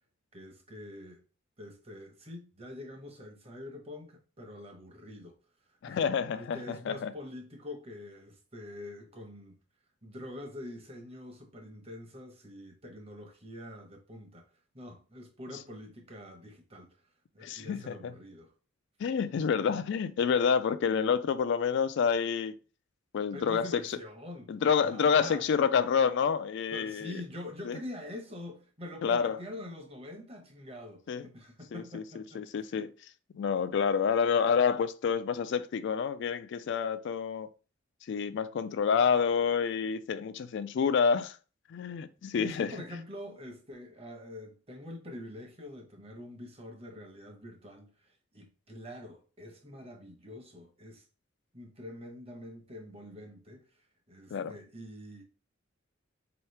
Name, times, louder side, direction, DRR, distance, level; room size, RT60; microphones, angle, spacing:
voice 1, 0.3-1.2 1.6-5.4 5.8-6.0 6.3-9.5 10.0-14.5 14.7-17.0 17.3-18.5 23.3-24.5 24.8-25.5 26.7-32.7 42.4-51.0 51.5-53.8 54.1-55.2, left 1 dB, 30° right, 1.0 m, -45 dB
voice 2, 5.8-7.1 17.4-18.1 19.0-22.5 23.1-24.0 24.5-27.2 27.6-27.8 29.0-29.4 31.1-31.3 31.7-32.9 33.3-37.5 38.1-41.4 41.7-42.7 54.3-54.5, left 6 dB, 60° left, 0.3 m, -28 dB
4.5 x 3.0 x 3.3 m
head